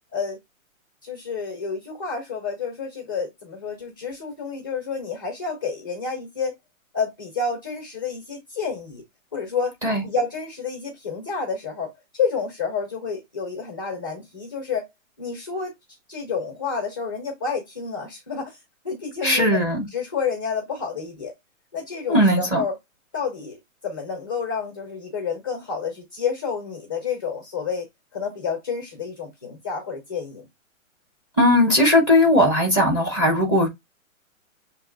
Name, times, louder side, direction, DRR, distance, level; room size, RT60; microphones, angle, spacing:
voice 1, 1.0-6.5 6.9-9.0 9.3-9.7 10.0-11.9 12.1-14.9 15.2-15.7 16.1-18.6 18.8-19.6 19.9-21.3 21.7-22.7 23.1-23.6 23.8-27.9 28.1-30.4, left 5 dB, 15° left, 0.4 m, -29 dB
voice 2, 19.2-19.8 22.1-22.6 31.4-33.7, left 1 dB, 10° right, 0.7 m, -18 dB
6.8 x 2.9 x 2.5 m
hypercardioid pair, 160°, 40 cm